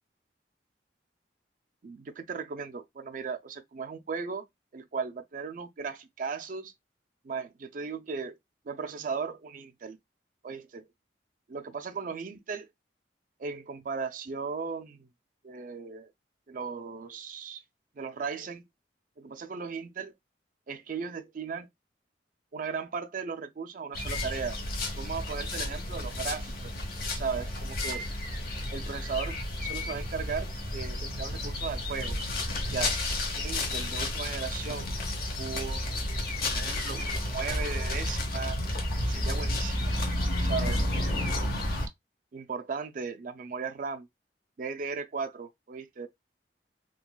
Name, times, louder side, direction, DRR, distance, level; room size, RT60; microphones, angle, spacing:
voice 1, 1.8-4.4 4.7-6.7 7.2-8.3 8.7-10.0 10.4-10.8 11.5-12.7 13.4-15.1 15.4-16.1 16.5-17.6 18.0-18.6 19.2-20.1 20.7-21.7 22.5-24.6 25.0-26.7 27.1-28.1 28.7-32.1 32.7-33.0 33.3-34.9 35.4-36.2 36.5-38.6 39.1-39.9 40.4-40.8 42.3-44.1 44.6-46.1, right 5 dB, 50° right, 0.4 m, -36 dB
sound 1, 23.9-41.9, left 1 dB, 55° left, 0.9 m, -31 dB
3.8 x 2.3 x 2.3 m
head